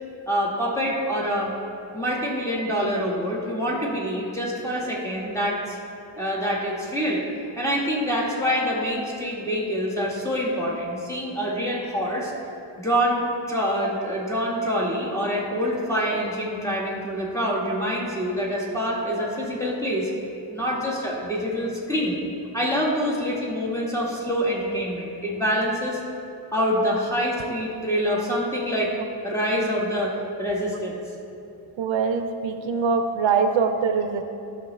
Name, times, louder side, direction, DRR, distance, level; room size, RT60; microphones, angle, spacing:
voice 1, 0.3-1.5 1.9-5.8 6.1-7.2 7.6-12.3 12.8-13.2 13.5-20.1 20.5-22.2 22.5-26.0 26.5-28.9 29.2-30.1 30.4-31.0, equal, 5° left, -4 dB, 1.7 m, -26 dB
voice 2, 31.8-34.2, right 5 dB, 75° right, 6 dB, 0.6 m, -23 dB
12.5 x 6.4 x 3.3 m, 2.7 s
wide cardioid pair, 110°, 46 cm